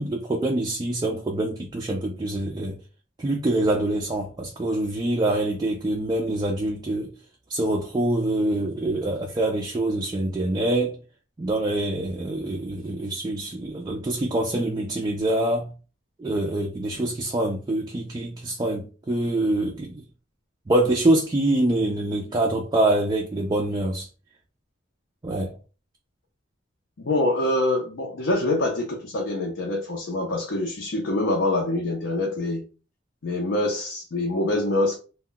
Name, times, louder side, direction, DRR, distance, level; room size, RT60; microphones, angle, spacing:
voice 1, 0.0-2.8 3.2-7.1 7.5-11.0 11.4-15.7 16.2-20.0 20.7-24.1 25.2-25.5, right 1 dB, 20° right, 0.3 m, -25 dB
voice 2, 27.0-32.7 33.2-35.0, left 2 dB, 65° left, 0.5 m, -25 dB
2.1 x 2.1 x 3.7 m
head